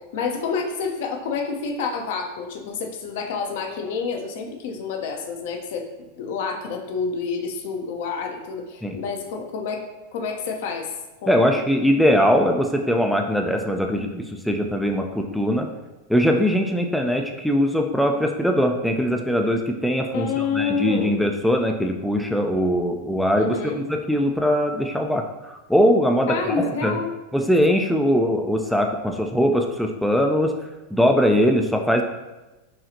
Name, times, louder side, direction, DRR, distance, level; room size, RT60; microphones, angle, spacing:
voice 1, 0.1-5.8 6.2-9.8 10.1-10.9 11.2-11.6 20.1-21.2 23.4-23.8 26.3-27.1, left 5 dB, 60° left, 3 dB, 0.6 m, -28 dB
voice 2, 11.3-15.7 16.1-26.5 26.8-27.0 27.3-30.5 30.9-32.0, equal, ahead, 2 dB, 0.3 m, -21 dB
5.6 x 2.4 x 2.7 m, 1.1 s
figure-of-eight pair, 90°, 0 cm